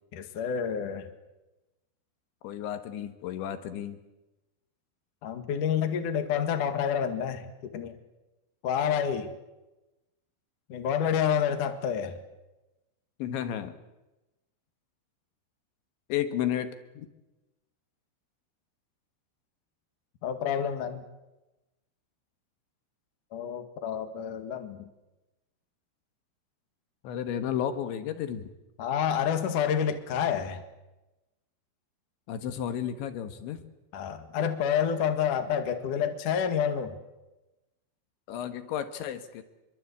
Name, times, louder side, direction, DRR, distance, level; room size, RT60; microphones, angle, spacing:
voice 1, 0.1-1.1 5.2-8.0 8.6-9.3 10.7-12.2 20.2-21.0 23.3-24.9 28.8-30.6 33.9-37.0, left 8 dB, 55° left, 7 dB, 2.6 m, -28 dB
voice 2, 2.4-4.0 13.2-13.8 16.1-17.1 27.0-28.5 32.3-33.6 38.3-39.4, left 10 dB, 70° left, 10 dB, 3.5 m, -33 dB
27.0 x 23.0 x 8.4 m, 1.0 s
omnidirectional pair, 5.7 m